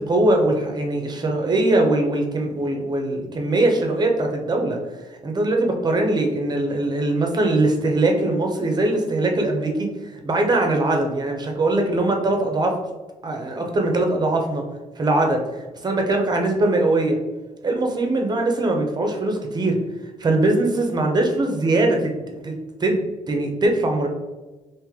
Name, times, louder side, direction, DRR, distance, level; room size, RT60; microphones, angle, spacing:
voice 1, 0.0-4.8 5.2-12.8 13.2-14.6 15.0-17.2 17.6-19.8 20.2-24.1, right 2 dB, 30° right, 2 dB, 0.7 m, -21 dB
3.1 x 2.6 x 3.5 m, 1.2 s
cardioid pair, 105°, 14 cm